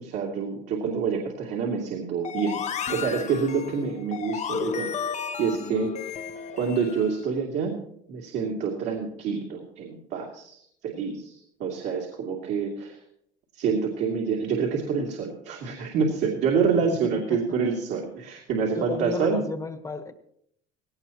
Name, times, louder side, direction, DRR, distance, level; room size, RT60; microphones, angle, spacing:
voice 1, 0.0-2.6 2.9-4.9 5.4-6.0 6.5-7.8 8.1-13.0 13.5-19.4, right 5 dB, 65° right, -2 dB, 2.8 m, -27 dB
sound 1, 2.2-7.1, left 7 dB, 35° left, 0.9 m, -33 dB
voice 2, 18.7-20.1, left 3 dB, 15° left, 9 dB, 1.3 m, -33 dB
18.0 x 17.5 x 3.0 m, 0.71 s
cardioid pair, 125°, 19 cm